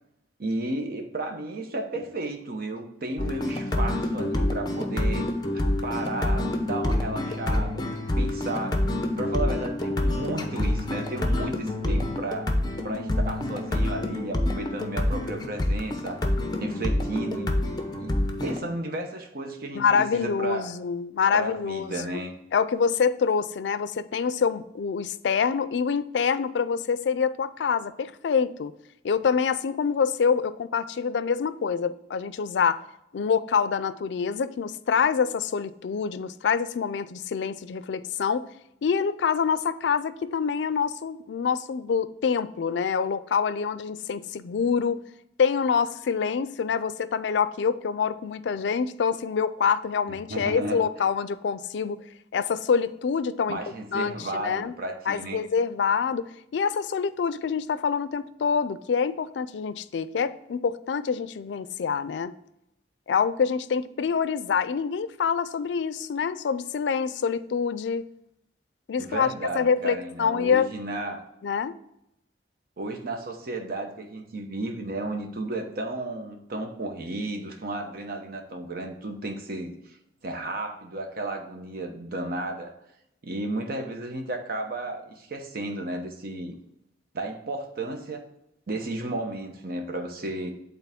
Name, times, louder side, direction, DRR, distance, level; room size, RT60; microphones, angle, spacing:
voice 1, 0.4-5.3 5.5-7.9 8.2-8.8 9.2-12.5 12.8-16.2 16.6-17.6 18.0-20.8 21.3-22.3 50.3-50.8 53.5-55.4 69.0-71.2 72.8-80.0 80.2-82.7 83.2-86.5 87.1-88.2 88.7-90.5, right 2 dB, 55° right, 4 dB, 0.9 m, -33 dB
sound 1, 3.2-18.6, left 1 dB, 25° left, 0.7 m, -27 dB
voice 2, 19.7-21.9 22.5-28.7 29.0-32.8 33.1-38.5 38.8-45.0 45.4-52.0 52.3-53.6 53.9-54.7 55.1-56.3 56.5-62.3 63.1-68.0 68.9-69.3 69.5-70.7 71.4-71.8, left 6 dB, 85° left, 15 dB, 0.4 m, -26 dB
8.2 x 3.9 x 3.5 m, 0.80 s
head